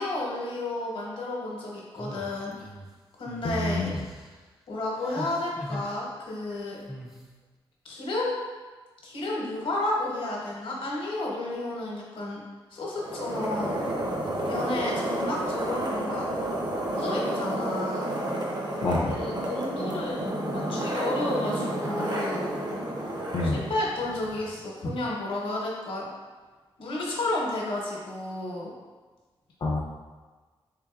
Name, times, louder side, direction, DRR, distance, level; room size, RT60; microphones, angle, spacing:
voice 1, 0.0-2.6 3.2-3.9 4.7-6.8 7.8-8.4 9.0-12.4 12.7-13.9 14.4-16.3 16.9-18.1 19.0-20.2 20.5-22.5 23.4-26.1 26.8-28.7, left 2 dB, 70° left, -3 dB, 0.9 m, -32 dB
sound 1, 2.0-2.9 3.3-3.5 3.9-4.4 5.0-5.9 6.9-7.2, equal, 5° right, 0.4 m, -40 dB
voice 2, 3.4-3.9 18.8-19.2 23.3-23.6 29.6-29.8, left 2 dB, 55° left, -4 dB, 0.4 m, -27 dB
sound 2, 12.9-24.5, right 1 dB, 50° right, 0.6 m, -31 dB
3.7 x 3.4 x 2.4 m, 1.3 s
wide cardioid pair, 130°, 9 cm